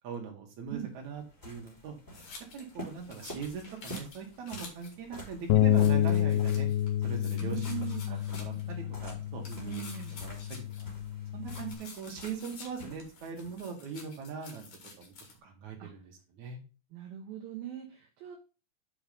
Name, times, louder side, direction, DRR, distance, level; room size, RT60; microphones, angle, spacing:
voice 1, 0.0-2.2 2.5-6.7 7.0-7.9 8.3-9.8 10.1-10.6 11.3-14.7 15.0-15.1 15.4-16.6, right 6 dB, 55° right, 2 dB, 2.5 m, -41 dB
sound 1, 0.6-13.6, equal, 5° left, 2.0 m, -49 dB
sound 2, 2.1-5.0 5.3-5.4 5.7-6.9 7.2-8.7 9.4-11.1 11.5-15.3, left 4 dB, 50° left, 2.8 m, -50 dB
Bass guitar, 5.5-11.7, left 12 dB, 80° left, 2.3 m, -29 dB
voice 2, 7.4-8.2 9.6-10.2 15.8-15.9 16.9-18.4, right 11 dB, 75° right, 3 dB, 2.4 m, -40 dB
7.7 x 4.7 x 5.1 m, 0.33 s
omnidirectional pair, 4.8 m